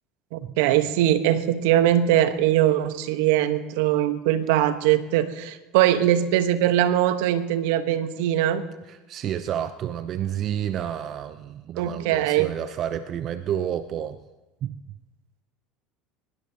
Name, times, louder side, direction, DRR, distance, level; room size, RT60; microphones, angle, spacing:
voice 1, 0.3-8.6 11.8-12.5, right 12 dB, 70° right, 10 dB, 1.2 m, -21 dB
voice 2, 8.8-14.2 14.6-15.0, right 10 dB, 50° right, 11 dB, 0.7 m, -30 dB
23.0 x 21.0 x 3.0 m, 1.1 s
hypercardioid pair, 75°, 0 cm